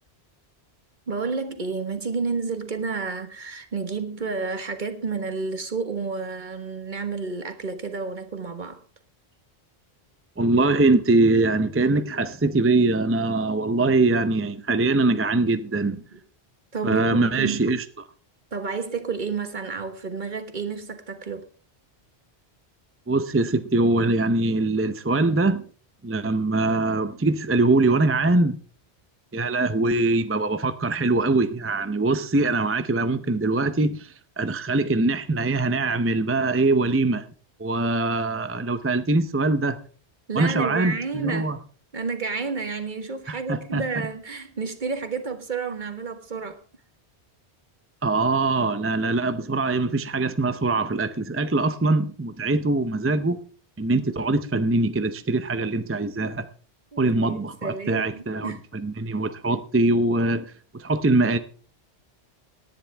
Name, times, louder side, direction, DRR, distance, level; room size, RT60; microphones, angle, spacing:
voice 1, 1.1-8.8 16.1-16.2 16.7-17.7 18.5-21.5 40.3-41.6 41.9-46.6 56.9-58.6, right 4 dB, 45° right, 1.4 m, -30 dB
voice 2, 10.4-16.0 16.8-17.8 23.1-25.6 26.0-28.6 29.3-37.3 37.6-39.8 40.3-41.6 43.3-43.9 48.0-53.4 53.8-56.5 57.0-61.4, right 2 dB, 15° right, 0.5 m, -23 dB
18.0 x 10.5 x 3.4 m
omnidirectional pair, 1.1 m